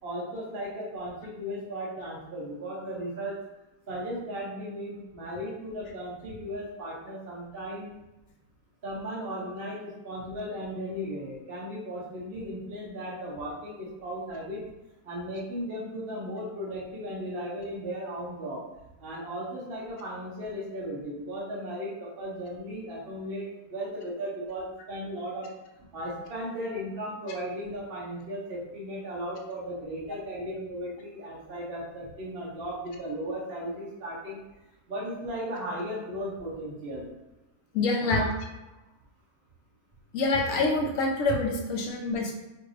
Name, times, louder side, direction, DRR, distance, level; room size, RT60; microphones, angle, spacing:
voice 1, 0.0-3.4 3.9-7.9 8.8-14.6 15.0-18.6 19.0-25.5 25.8-34.4 34.9-37.1 38.0-38.3, equal, 45° right, -4 dB, 1.1 m, -36 dB
voice 2, 37.7-38.2 40.1-42.3, left 3 dB, 65° left, 1 dB, 1.1 m, -26 dB
4.9 x 2.6 x 3.2 m, 1.0 s
omnidirectional pair, 1.6 m